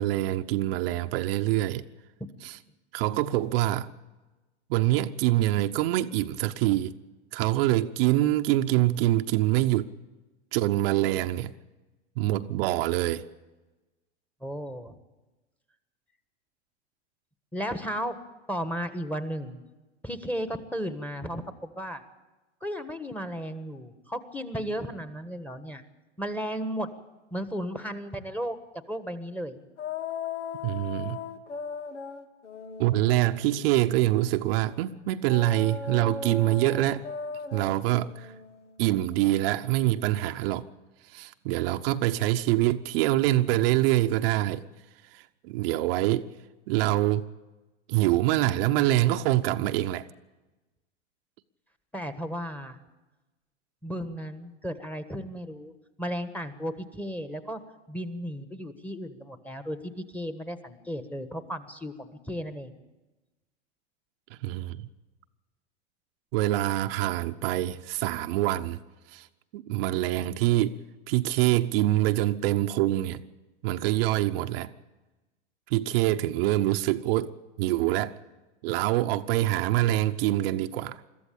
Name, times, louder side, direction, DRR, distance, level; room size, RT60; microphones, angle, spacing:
voice 1, 0.0-1.8 2.4-2.6 2.9-3.9 4.7-6.9 7.3-9.9 10.5-11.5 12.2-13.2 30.6-31.2 32.8-37.0 37.5-38.3 38.8-40.7 41.1-44.6 45.1-46.3 46.7-47.3 47.9-50.0 64.4-64.9 66.3-68.8 69.1-69.3 69.5-70.8 71.1-73.2 73.6-74.7 75.7-77.3 77.6-78.1 78.6-81.0, right 15 dB, 55° right, 0.9 m, -25 dB
voice 2, 14.4-14.9 17.5-18.2 18.5-19.6 20.0-22.0 22.6-25.8 26.2-26.9 27.3-28.6 28.9-29.6 51.9-52.8 53.8-55.7 56.0-57.6 57.9-62.7, equal, 5° left, 1.4 m, -34 dB
sound 1, 29.8-34.4 35.3-40.0, left 5 dB, 85° left, 1.6 m, -38 dB
22.0 x 14.0 x 8.7 m
hypercardioid pair, 110°, 35 cm